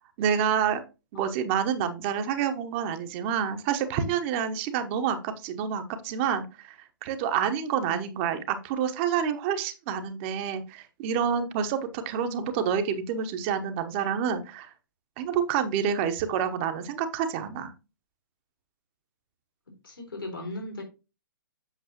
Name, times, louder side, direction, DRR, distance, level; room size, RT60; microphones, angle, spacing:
voice 1, 0.2-0.8 1.1-14.7 15.2-17.7, right 8 dB, 35° right, 1.0 m, -28 dB
voice 2, 7.8-8.2 19.7-20.8, left 1 dB, 80° left, 4.1 m, -38 dB
8.1 x 6.4 x 2.9 m
figure-of-eight pair, 120°, 11 cm